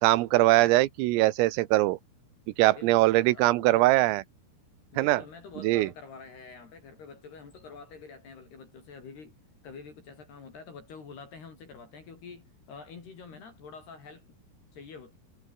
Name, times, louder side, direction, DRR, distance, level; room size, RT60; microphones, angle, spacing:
voice 1, 0.0-2.0 2.6-4.2 5.0-5.2 5.6-5.9, right 18 dB, 90° right, 3.7 m, -22 dB
voice 2, 2.7-4.0 4.9-9.4 9.6-14.3 14.7-15.2, left 5 dB, 55° left, 6.4 m, -47 dB
omnidirectional pair, 5.8 m